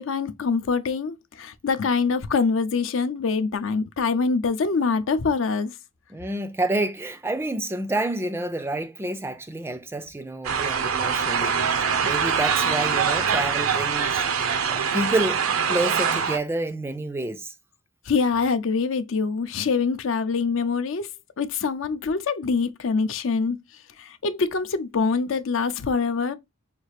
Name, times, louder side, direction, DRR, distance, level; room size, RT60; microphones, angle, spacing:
voice 1, 0.0-5.7 18.1-21.1 21.4-23.6 24.0-26.3, left 4 dB, 70° left, 0.5 m, -24 dB
voice 2, 6.1-14.2 14.7-17.5, right 2 dB, 10° right, 0.3 m, -29 dB
sound 1, 10.4-16.4, right 6 dB, 85° right, 0.6 m, -24 dB
5.1 x 2.4 x 3.2 m
head